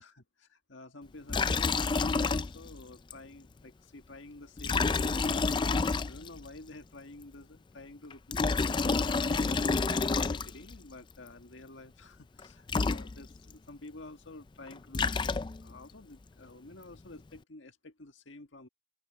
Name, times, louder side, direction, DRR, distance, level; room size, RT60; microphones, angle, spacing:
voice 1, 0.0-18.7, left 2 dB, 85° left, 1.7 m, -50 dB
Liquid, 1.3-2.8 3.1-3.2 4.6-6.5 8.1-10.8 12.4-12.5 12.7-13.5 14.7-15.8, left 4 dB, 25° left, 0.3 m, -29 dB
open air
head